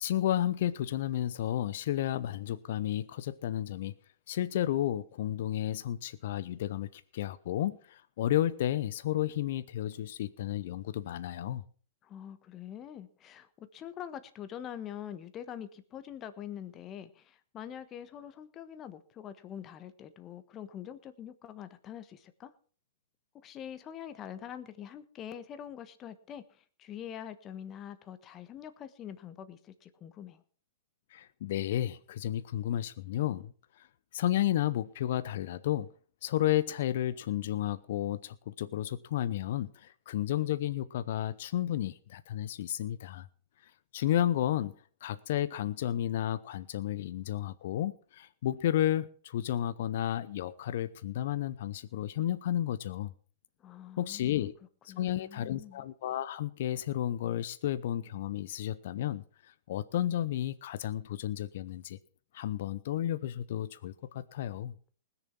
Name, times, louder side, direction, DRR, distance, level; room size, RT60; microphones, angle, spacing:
voice 1, 0.0-3.9 4.3-11.6 31.1-33.9 34.1-35.9 36.2-43.3 43.6-44.7 45.0-53.1 54.0-54.5 54.8-62.0 62.3-64.7, left 12 dB, 65° left, 0.7 m, -32 dB
voice 2, 12.0-22.5 23.4-30.4 53.6-54.5 54.9-55.8, left 9 dB, 30° left, 1.4 m, -45 dB
20.0 x 7.0 x 6.0 m
hypercardioid pair, 115°, 0 cm